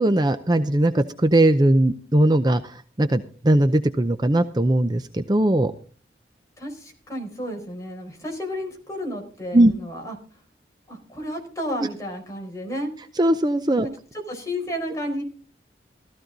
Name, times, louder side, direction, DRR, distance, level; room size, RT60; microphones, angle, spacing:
voice 1, 0.0-5.7 9.5-9.7 13.2-13.9, right 1 dB, 25° right, 9 dB, 0.6 m, -19 dB
voice 2, 6.6-10.1 10.9-12.9 13.8-15.2, equal, 15° left, 1 dB, 4.7 m, -32 dB
15.0 x 14.5 x 4.0 m, 0.40 s
head